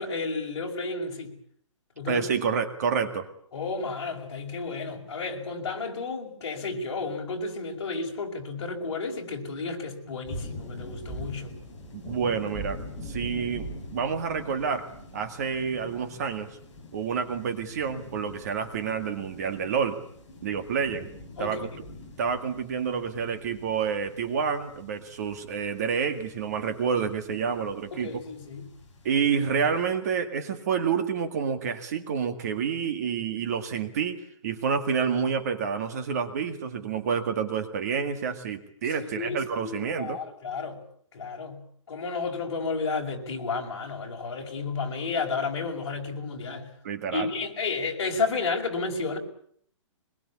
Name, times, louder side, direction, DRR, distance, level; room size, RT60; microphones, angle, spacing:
voice 1, 0.0-1.3 2.0-2.3 3.5-11.5 21.4-21.7 27.9-28.7 38.9-40.8 41.1-41.6 41.9-46.7 47.1-49.2, left 4 dB, 55° left, 5.7 m, -32 dB
voice 2, 2.1-3.3 11.9-14.9 15.1-16.5 16.9-20.0 20.4-21.1 21.4-21.7 22.2-28.1 29.0-40.2 46.8-47.3, right 6 dB, 30° right, 1.9 m, -28 dB
sound 1, 10.2-29.8, left 1 dB, 15° left, 4.9 m, -43 dB
23.5 x 22.0 x 8.5 m
hypercardioid pair, 180°, 17 cm